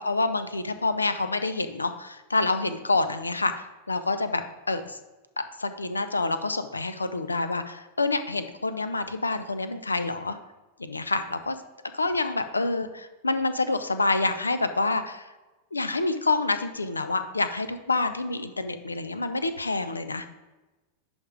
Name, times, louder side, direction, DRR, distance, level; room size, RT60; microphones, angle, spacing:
voice 1, 0.0-5.0 5.4-10.4 10.8-11.6 11.9-15.3 15.7-20.3, left 3 dB, 80° left, 10 dB, 0.6 m, -27 dB
10.5 x 3.6 x 5.1 m, 1.1 s
figure-of-eight pair, 90°, 0 cm